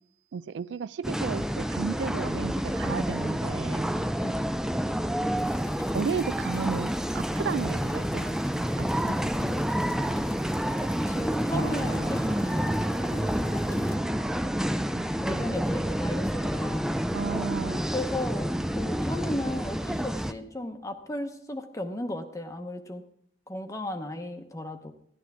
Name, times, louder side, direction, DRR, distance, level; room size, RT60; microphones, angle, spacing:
voice 1, 0.3-3.9 5.9-8.9 14.9-15.0 17.1-17.8, right 6 dB, 80° right, 18 dB, 0.4 m, -34 dB
sound 1, 1.0-20.3, equal, 5° right, 0.3 m, -29 dB
sound 2, 5.4-14.0, left 6 dB, 55° left, 1.2 m, -53 dB
voice 2, 9.3-10.1 11.1-14.0 14.5-17.0 17.9-18.5 18.7-23.0 23.5-24.9, left 1 dB, 15° left, 6 dB, 0.8 m, -36 dB
sound 3, 11.5-19.6 20.1-20.2, right 2 dB, 45° right, 1.5 m, -43 dB
14.0 x 11.0 x 3.5 m, 0.68 s
head